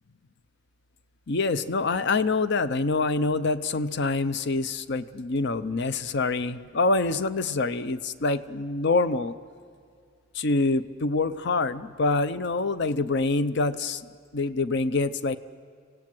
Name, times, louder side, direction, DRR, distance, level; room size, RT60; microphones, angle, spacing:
voice 1, 1.3-9.3 10.3-15.4, left 3 dB, 55° left, 13 dB, 0.7 m, -26 dB
26.5 x 17.5 x 7.7 m, 2.3 s
head